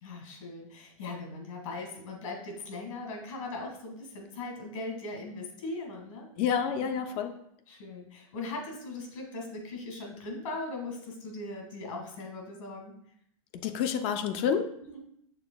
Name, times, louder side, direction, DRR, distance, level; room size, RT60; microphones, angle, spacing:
voice 1, 0.0-6.3 6.8-7.0 7.7-12.9 14.8-15.0, left 2 dB, 70° left, 2 dB, 1.8 m, -39 dB
voice 2, 6.4-7.3 13.6-14.7, left 7 dB, 35° left, 8 dB, 0.4 m, -28 dB
6.6 x 3.3 x 2.2 m, 0.72 s
supercardioid pair, 150°, 18 cm